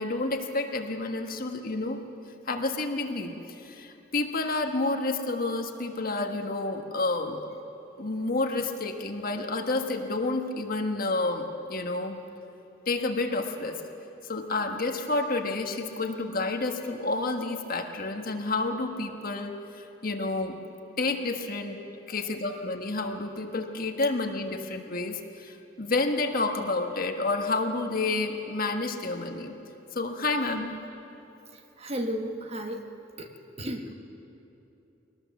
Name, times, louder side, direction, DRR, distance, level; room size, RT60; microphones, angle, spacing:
voice 1, 0.0-2.0 2.5-3.3 3.6-7.4 8.0-12.2 12.9-13.8 14.2-20.6 21.0-21.8 22.1-29.5 29.9-30.8, left 3 dB, 45° left, 4 dB, 1.5 m, -29 dB
voice 2, 31.5-32.8 33.2-33.9, equal, 30° right, 4 dB, 1.3 m, -34 dB
22.5 x 18.5 x 7.2 m, 3.0 s
head